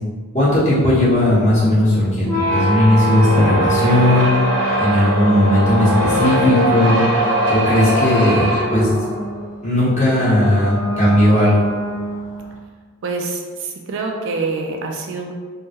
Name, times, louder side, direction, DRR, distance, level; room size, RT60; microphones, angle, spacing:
voice 1, 0.3-4.3 4.8-7.0 7.5-9.0 9.6-11.6, left 1 dB, 30° left, -10 dB, 1.2 m, -16 dB
sound 1, 2.2-12.5, right 1 dB, 80° right, 0.9 m, -21 dB
voice 2, 13.0-15.3, right 3 dB, 60° right, 1 dB, 0.4 m, -26 dB
3.6 x 2.1 x 2.8 m, 1.5 s
head